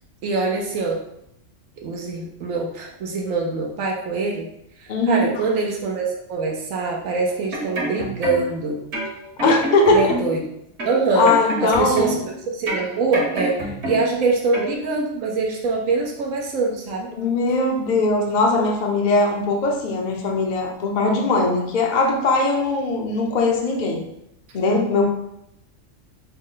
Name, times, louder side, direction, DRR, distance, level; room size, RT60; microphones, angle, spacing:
voice 1, 0.2-1.0 1.8-4.5 4.8-8.8 9.4-9.6 9.9-10.4 10.9-11.3 11.6-17.1, right 3 dB, 85° right, 0 dB, 1.0 m, -24 dB
voice 2, 4.9-5.3 9.4-10.1 11.1-12.1 17.2-24.0 24.5-25.0, left 3 dB, 50° left, 1 dB, 0.6 m, -20 dB
sound 1, 7.3-8.6 8.9-10.4 10.8-12.3 12.7-14.2 14.5-14.7, right 1 dB, 60° right, 1.3 m, -28 dB
5.6 x 2.1 x 3.7 m, 0.78 s
omnidirectional pair, 1.3 m